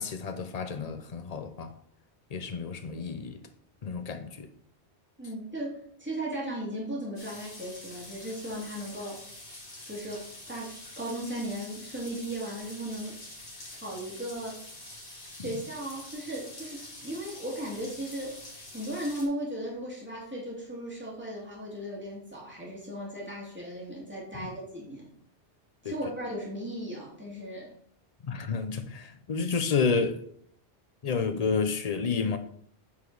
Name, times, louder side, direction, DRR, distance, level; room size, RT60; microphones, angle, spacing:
voice 1, 0.0-1.7 2.3-3.4 3.8-4.5 15.4-15.6 24.3-24.5 25.8-25.9 28.2-30.2 31.0-32.4, left 5 dB, 40° left, 0.7 m, -30 dB
voice 2, 5.2-9.2 9.8-13.2 13.7-14.6 15.3-18.4 18.7-25.1 25.8-27.7, right 1 dB, 10° right, 2.5 m, -36 dB
sound 1, 7.2-19.3, left 1 dB, 75° left, 2.2 m, -46 dB
8.3 x 4.8 x 4.0 m
omnidirectional pair, 1.1 m